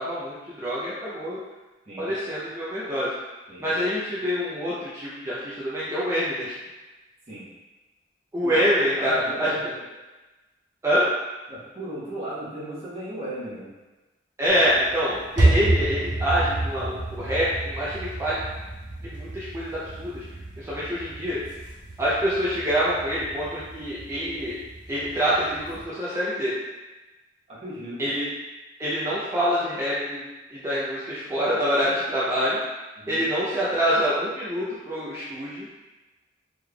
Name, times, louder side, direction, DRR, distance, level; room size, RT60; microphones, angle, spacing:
voice 1, 0.0-1.4 2.0-3.1 3.6-6.5 8.3-9.1 9.4-9.5 10.8-11.1 14.4-18.4 19.0-20.2 20.6-21.4 22.0-24.5 24.9-26.5 28.0-28.3 28.8-30.2 30.5-32.6 33.1-35.7, equal, 15° right, -9 dB, 0.4 m, -26 dB
voice 2, 8.9-9.7 11.5-13.7 27.5-28.0 33.0-33.3, right 1 dB, 35° right, -10 dB, 1.0 m, -36 dB
sound 1, 14.5-25.8, right 2 dB, 80° right, 0.9 m, -29 dB
3.5 x 3.3 x 2.2 m, 1.2 s
head